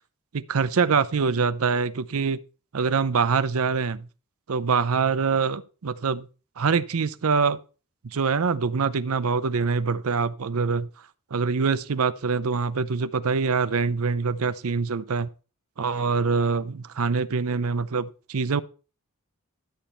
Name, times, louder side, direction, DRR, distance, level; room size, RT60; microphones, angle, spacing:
voice 1, 0.3-2.4 2.7-4.1 4.5-6.3 6.6-7.6 8.0-10.9 11.3-15.3 15.8-18.6, right 5 dB, 70° right, 0.6 m, -24 dB
12.0 x 7.1 x 4.3 m
head